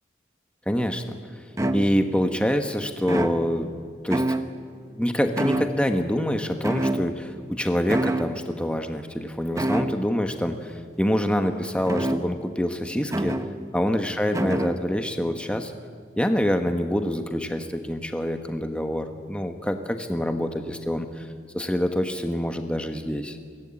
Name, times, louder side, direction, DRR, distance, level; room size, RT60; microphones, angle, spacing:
voice 1, 0.7-1.2 1.7-3.7 4.0-4.2 5.0-13.4 13.7-15.7 16.2-21.3 21.5-23.4, equal, 5° left, 6 dB, 1.1 m, -26 dB
sound 1, 1.6-2.3 3.0-3.8 4.1-4.8 5.4-6.1 6.6-7.5 7.9-8.4 9.6-10.2 11.9-12.6 13.1-13.6 14.3-14.9, right 1 dB, 15° right, 0.9 m, -28 dB
23.5 x 17.0 x 8.8 m, 2.2 s
head